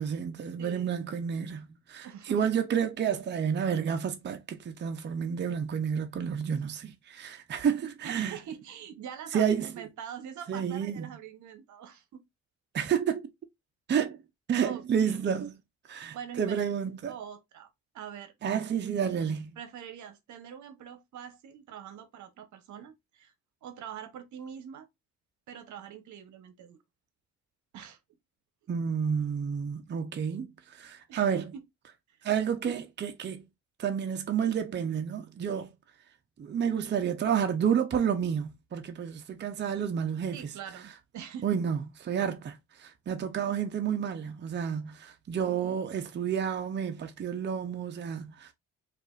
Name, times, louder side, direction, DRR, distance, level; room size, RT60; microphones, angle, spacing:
voice 1, 0.0-8.4 9.3-9.7 10.5-11.1 12.7-13.3 13.9-14.2 14.5-15.5 15.9-17.2 18.4-19.5 28.7-31.4 32.2-33.4 33.8-35.7 36.4-40.5 41.4-41.8 42.0-48.5, right 7 dB, 35° right, 0.6 m, -30 dB
voice 2, 2.0-2.5 8.0-12.2 14.6-15.3 16.1-16.7 17.1-17.7 17.9-18.3 19.6-23.3 23.6-24.9 25.5-26.8 27.7-28.0 31.1-31.4 40.3-41.6, right 8 dB, 70° right, 0.8 m, -44 dB
4.7 x 2.5 x 2.3 m
cardioid pair, 90°, 30 cm